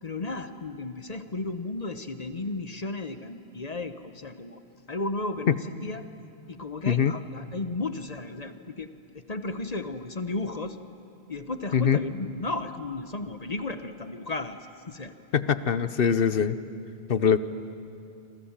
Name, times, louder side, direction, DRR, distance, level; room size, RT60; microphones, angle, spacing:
voice 1, 0.0-4.6 4.9-6.1 6.5-10.8 11.3-14.6 14.9-15.1, left 2 dB, 40° left, 10 dB, 1.1 m, -34 dB
voice 2, 15.3-16.6 17.1-17.4, left 7 dB, 60° left, 13 dB, 1.0 m, -22 dB
26.5 x 26.5 x 7.3 m, 2.5 s
omnidirectional pair, 1.1 m